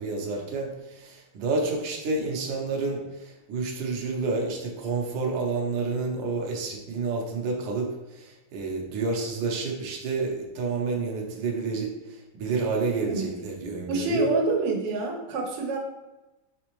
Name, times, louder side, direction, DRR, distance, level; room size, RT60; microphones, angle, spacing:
voice 1, 0.0-14.3, right 4 dB, 65° right, 0 dB, 1.4 m, -29 dB
voice 2, 13.9-15.8, right 3 dB, 90° right, 1 dB, 1.7 m, -26 dB
5.1 x 3.4 x 3.0 m, 1.0 s
omnidirectional pair, 2.4 m